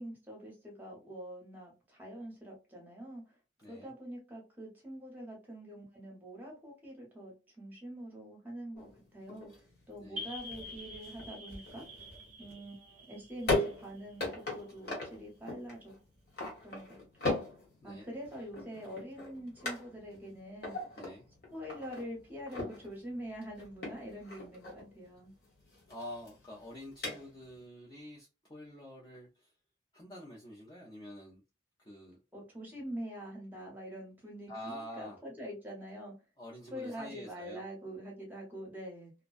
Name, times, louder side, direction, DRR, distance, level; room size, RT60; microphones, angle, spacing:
voice 1, 0.0-3.4 3.7-11.8 12.4-14.3 14.5-15.9 16.6-16.9 17.2-17.4 17.8-20.8 21.5-25.3 32.3-36.1 36.7-39.1, equal, 10° right, 0.8 m, -45 dB
voice 2, 3.6-3.9 10.0-10.3 17.8-18.1 21.0-21.3 25.9-29.5 29.9-31.4 31.8-32.2 34.5-35.2 36.4-37.6, equal, 20° left, 0.4 m, -47 dB
sound 1, 8.8-27.6, left 2 dB, 55° left, 1.0 m, -40 dB
sound 2, 10.2-14.6, left 1 dB, 40° right, 0.5 m, -47 dB
2.4 x 2.1 x 2.3 m
head